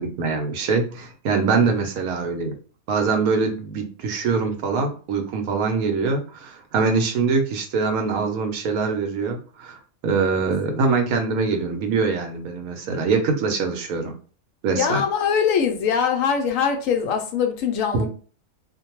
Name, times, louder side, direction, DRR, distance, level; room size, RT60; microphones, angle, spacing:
voice 1, 0.0-2.6 2.9-9.8 10.0-14.1 14.6-15.0 17.9-18.1, right 4 dB, 80° right, 5 dB, 1.1 m, -23 dB
voice 2, 10.7-11.1 14.8-18.1, left 7 dB, 70° left, 4 dB, 0.9 m, -23 dB
2.5 x 2.2 x 2.9 m, 0.39 s
omnidirectional pair, 1.5 m